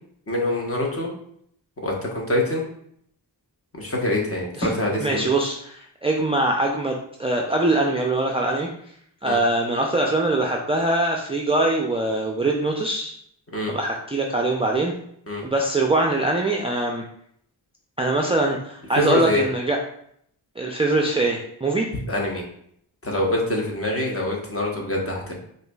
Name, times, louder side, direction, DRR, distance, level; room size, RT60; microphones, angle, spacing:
voice 1, 0.3-1.1 1.8-2.6 3.7-5.2 9.3-9.4 13.5-13.7 15.3-15.4 19.0-19.4 22.1-22.4 23.0-25.4, left 1 dB, 30° left, -1 dB, 1.1 m, -25 dB
voice 2, 5.0-8.7 9.2-13.2 13.7-14.9 15.4-17.0 18.0-19.8 20.6-21.9, right 2 dB, 15° right, 0 dB, 0.4 m, -23 dB
4.8 x 2.6 x 2.3 m, 0.68 s
cardioid pair, 55°, 44 cm